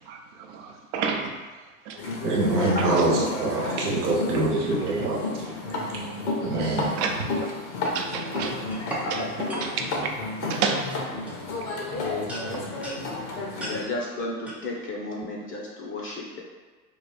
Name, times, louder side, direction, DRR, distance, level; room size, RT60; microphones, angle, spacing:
voice 1, 0.1-1.4 1.9-2.0 2.8-2.9 6.8-7.5 7.9-8.6 8.9-9.2 9.6-10.1 10.4-10.8, right 5 dB, 50° right, 2 dB, 0.6 m, -30 dB
sound 1, 2.0-13.8, left 2 dB, 60° left, 1.0 m, -32 dB
voice 2, 2.2-5.5 6.4-7.0, right 2 dB, 80° right, -1 dB, 1.0 m, -25 dB
voice 3, 2.9-3.2 9.2-9.6 12.0-12.2 13.6-16.4, left 3 dB, 30° left, -2 dB, 0.7 m, -33 dB
sound 2, 7.6-9.1 9.5-9.7 10.4-10.6 10.9-11.9 12.3-13.0 13.6-13.8 14.5-14.6, right 1 dB, 5° right, 0.4 m, -36 dB
3.1 x 2.4 x 4.1 m, 1.3 s
hypercardioid pair, 95°, 45 cm